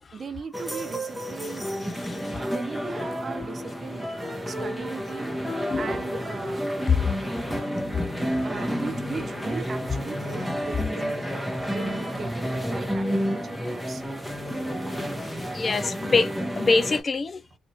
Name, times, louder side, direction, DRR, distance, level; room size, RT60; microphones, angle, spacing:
voice 1, 0.1-1.7 2.3-5.3 5.7-6.8 8.4-11.3 11.7-14.0, right 5 dB, 40° right, 0.5 m, -38 dB
sound 1, 0.5-17.0, equal, ahead, 0.8 m, -30 dB
voice 2, 2.0-2.4 5.7-5.9 15.5-16.3 16.6-17.4, left 3 dB, 35° left, 0.4 m, -24 dB
sound 2, 7.5-15.9, left 3 dB, 75° left, 1.2 m, -49 dB
3.0 x 2.4 x 2.7 m
cardioid pair, 90°, 0 cm